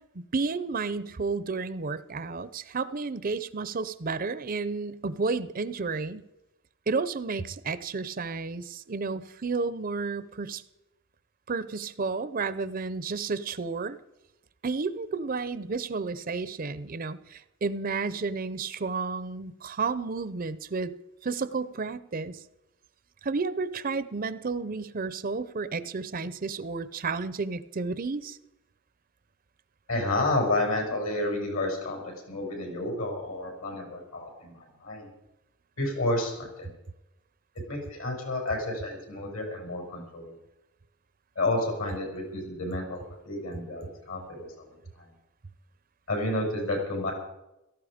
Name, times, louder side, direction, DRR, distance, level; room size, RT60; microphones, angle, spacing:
voice 1, 0.1-6.3 6.9-10.6 11.5-14.0 14.6-20.9 21.2-22.4 23.2-28.4, right 4 dB, 40° right, 15 dB, 0.6 m, -31 dB
voice 2, 29.9-35.1 35.8-36.7 37.7-40.4 41.3-44.7 44.9-45.1 46.1-47.1, left 2 dB, 70° left, 1 dB, 6.3 m, -30 dB
17.0 x 14.5 x 5.0 m, 0.92 s
head